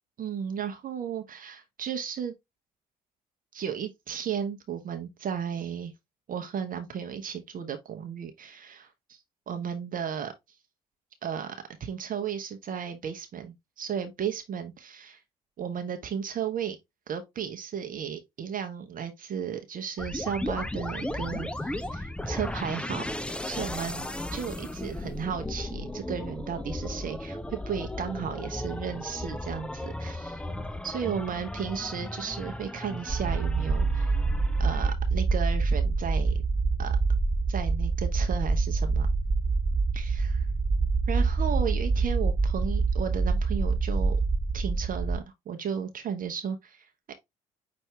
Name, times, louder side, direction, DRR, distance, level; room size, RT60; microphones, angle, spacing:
voice 1, 0.2-2.3 3.5-5.9 6.3-9.2 9.5-10.3 11.2-15.2 15.6-16.8 17.1-23.0 23.5-30.4 30.8-34.2 34.6-36.4 36.8-37.0 37.5-39.1 39.9-40.5 41.1-44.2 44.5-47.1, right 8 dB, 45° right, 0.9 m, -34 dB
sound 1, 20.0-34.9, left 1 dB, 5° left, 0.5 m, -36 dB
sound 2, 33.1-45.2, right 4 dB, 30° right, 1.5 m, -26 dB
5.8 x 2.6 x 3.3 m
hypercardioid pair, 50°, 20 cm